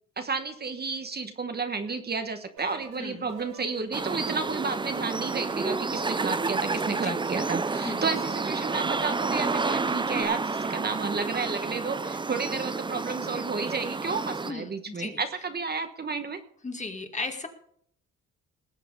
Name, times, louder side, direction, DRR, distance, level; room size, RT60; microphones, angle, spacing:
voice 1, 0.2-16.4, right 4 dB, 35° right, 7 dB, 1.3 m, -32 dB
sound 1, 2.6-10.2, right 5 dB, 80° right, 3.1 m, -45 dB
voice 2, 3.0-3.3 7.0-7.2 7.8-8.0 14.4-15.2 16.6-17.5, left 3 dB, 25° left, 5 dB, 2.0 m, -36 dB
sound 2, 3.9-14.5, right 4 dB, 15° right, 0.5 m, -30 dB
19.0 x 7.5 x 5.3 m, 0.65 s
cardioid pair, 90°, 30 cm